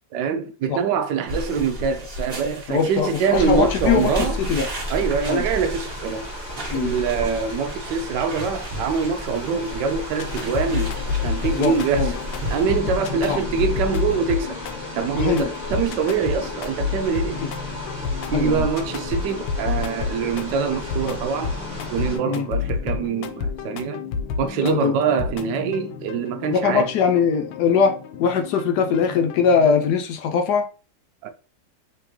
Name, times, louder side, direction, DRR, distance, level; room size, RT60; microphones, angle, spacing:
voice 1, 0.1-4.4 4.9-6.3 6.7-10.9 11.2-12.1 12.5-14.6 14.9-17.4 18.3-21.6 21.9-24.0 24.4-26.9 31.2-31.3, right 6 dB, 75° right, 1.1 m, -24 dB
sound 1, 1.3-12.6, right 1 dB, 30° right, 1.4 m, -36 dB
voice 2, 2.7-4.7 5.3-5.4 6.7-6.9 11.6-12.1 13.3-13.4 15.1-15.5 17.4-17.5 18.3-18.7 22.2-22.5 24.6-24.9 26.5-30.7, left 6 dB, 75° left, 1.0 m, -21 dB
sound 2, 3.3-22.2, left 1 dB, 20° left, 1.2 m, -33 dB
sound 3, 10.2-29.9, left 6 dB, 90° left, 1.3 m, -30 dB
3.6 x 3.2 x 3.0 m
omnidirectional pair, 2.1 m